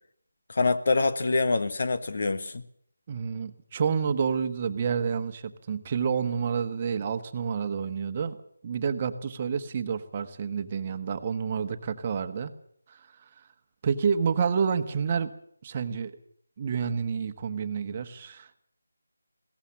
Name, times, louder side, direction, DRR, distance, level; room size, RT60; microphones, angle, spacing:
voice 1, 0.5-2.6, left 3 dB, 50° left, 11 dB, 1.5 m, -25 dB
voice 2, 3.1-8.4 8.6-12.5 12.9-13.5 13.8-15.3 15.6-16.1 16.6-18.6, right 6 dB, 30° right, 8 dB, 1.3 m, -29 dB
21.5 x 17.5 x 7.4 m, 0.65 s
figure-of-eight pair, 165°, 0 cm